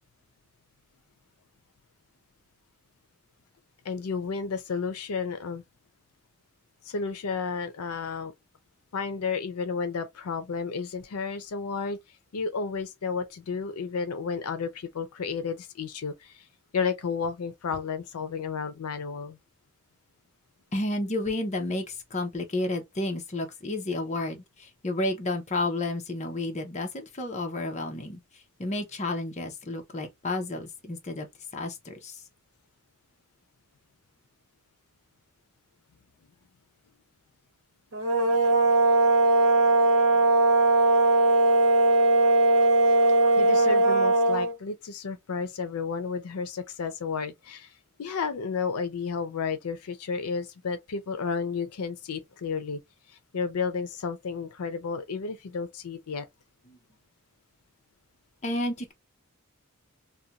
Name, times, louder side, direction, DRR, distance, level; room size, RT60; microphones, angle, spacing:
voice 1, 3.8-5.6 6.8-8.3 8.9-12.0 12.3-16.4 16.7-19.4 43.4-47.7 48.0-52.8 53.3-56.3, left 5 dB, 80° left, 0.5 m, -32 dB
voice 2, 20.7-28.2 28.6-31.3 31.5-32.2 56.7-56.8 58.4-58.9, left 2 dB, 30° left, 0.6 m, -31 dB
sound 1, 37.9-44.5, right 3 dB, 75° right, 1.0 m, -20 dB
2.5 x 2.2 x 2.8 m
head